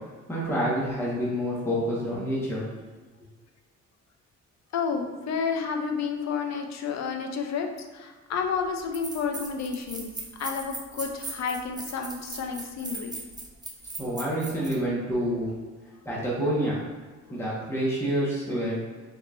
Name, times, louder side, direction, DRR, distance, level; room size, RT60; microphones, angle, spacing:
voice 1, 0.3-2.6 14.0-15.5 16.0-16.8 17.3-18.8, equal, 10° left, -8 dB, 1.4 m, -27 dB
voice 2, 4.7-10.1 10.4-13.1, left 5 dB, 60° left, 4 dB, 0.6 m, -30 dB
sound 1, 8.4-8.5 8.9-14.8, right 2 dB, 15° right, 0.7 m, -39 dB
4.1 x 3.6 x 2.6 m, 1.4 s
cardioid pair, 90°, 30 cm